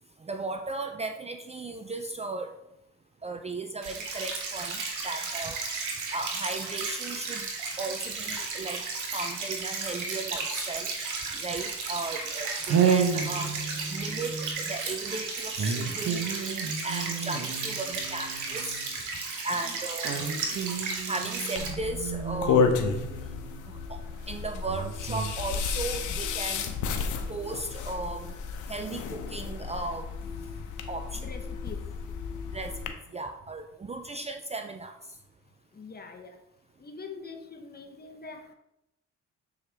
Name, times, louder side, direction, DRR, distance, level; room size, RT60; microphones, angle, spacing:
voice 1, 0.2-2.5 3.2-5.6 6.1-7.5 7.8-8.8 9.1-10.9 11.3-13.5 13.9-18.8 19.4-20.3 21.1-22.8 23.7-24.0 24.3-26.8 27.3-28.4 28.7-30.1 30.9-31.3 32.5-32.8 33.1-35.0, right 3 dB, 20° right, 6 dB, 0.5 m, -36 dB
sound 1, 3.8-21.7, right 4 dB, 80° right, 1.7 m, -34 dB
sound 2, 12.2-12.3 12.6-14.8 15.6-19.0 20.0-23.9 24.7-25.3, right 6 dB, 60° right, 1.1 m, -31 dB
sound 3, 21.5-32.9, left 5 dB, 80° left, 0.8 m, -32 dB
voice 2, 31.1-31.9 35.7-36.4 36.8-38.5, left 4 dB, 30° left, 4 dB, 1.1 m, -44 dB
7.0 x 4.7 x 3.4 m, 0.88 s
cardioid pair, 90°, 30 cm